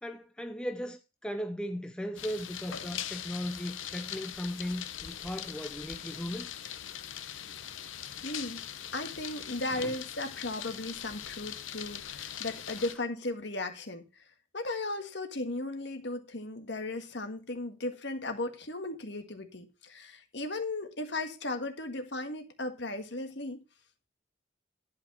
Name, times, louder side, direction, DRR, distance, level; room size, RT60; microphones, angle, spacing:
voice 1, 0.0-6.5 9.7-9.9, equal, 5° left, 0.5 m, -37 dB
sound 1, 2.2-13.0, left 10 dB, 80° left, 0.9 m, -41 dB
voice 2, 8.2-8.6 8.9-14.0 14.5-23.6, left 2 dB, 60° left, 1.7 m, -36 dB
11.5 x 5.0 x 6.1 m
head